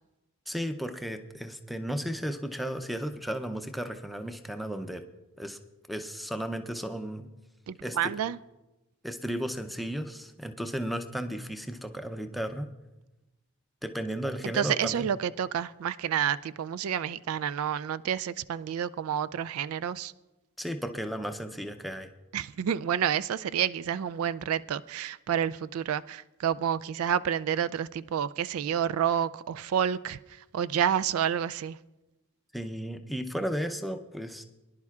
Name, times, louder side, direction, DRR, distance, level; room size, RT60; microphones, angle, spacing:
voice 1, 0.5-5.0 5.4-5.6 5.9-7.3 7.8-8.1 9.0-12.7 13.8-15.0 20.6-22.1 32.5-34.4, equal, ahead, 0.6 m, -34 dB
voice 2, 7.7-8.4 14.4-20.1 22.3-31.8, right 9 dB, 85° right, 0.3 m, -29 dB
23.0 x 11.0 x 2.4 m
head